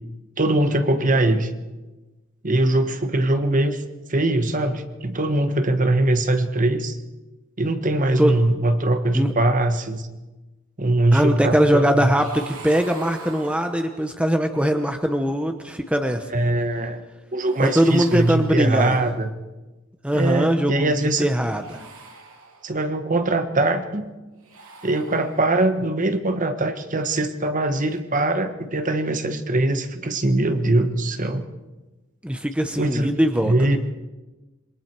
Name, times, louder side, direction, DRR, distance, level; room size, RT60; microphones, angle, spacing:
voice 1, 0.4-1.5 2.4-3.8 4.1-7.0 7.6-10.1 10.8-12.1 16.3-17.0 17.3-19.3 20.1-21.3 22.6-24.1 24.8-31.4 32.8-33.1 33.4-33.8, right 2 dB, 40° right, 8 dB, 1.4 m, -22 dB
voice 2, 11.1-16.3 17.6-19.0 20.0-20.9 21.2-21.8 32.2-33.5, equal, 5° right, 5 dB, 1.0 m, -21 dB
sound 1, 12.0-14.2 17.4-19.0 21.4-23.0 24.3-25.7 27.7-28.0, right 4 dB, 75° right, 2.9 m, -44 dB
27.0 x 22.5 x 4.7 m, 1.1 s
head